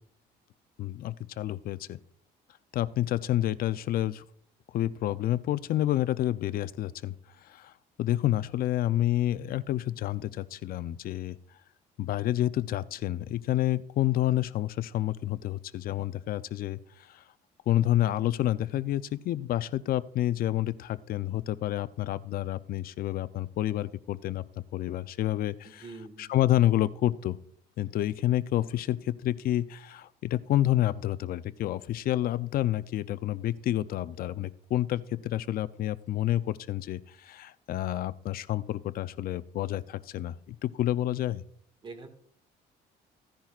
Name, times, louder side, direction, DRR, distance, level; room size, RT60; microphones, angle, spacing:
voice 1, 0.8-2.0 2.7-4.2 4.7-7.1 7.4-7.7 8.0-11.4 12.0-16.8 17.1-17.2 17.7-25.8 26.2-27.4 27.8-41.4, left 13 dB, 60° left, 14 dB, 0.6 m, -29 dB
voice 2, 25.6-26.4 41.8-42.1, right 3 dB, 30° right, 7 dB, 1.9 m, -44 dB
15.5 x 10.0 x 2.4 m, 0.65 s
cardioid pair, 110°, 17 cm